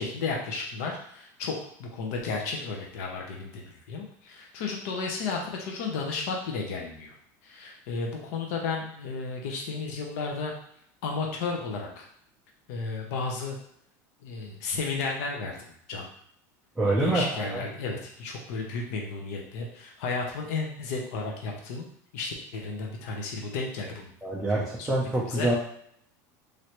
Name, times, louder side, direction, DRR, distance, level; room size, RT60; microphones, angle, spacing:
voice 1, 0.0-7.2 7.4-10.5 11.0-12.1 12.7-13.6 14.2-15.6 15.9-16.1 16.8-21.9 22.1-24.1 24.5-24.9 25.3-25.5, left 4 dB, 65° left, 1 dB, 0.7 m, -33 dB
voice 2, 16.8-17.6 24.2-25.5, right 2 dB, 5° right, -5 dB, 0.4 m, -26 dB
3.2 x 2.6 x 2.9 m, 0.67 s
supercardioid pair, 170°, 9 cm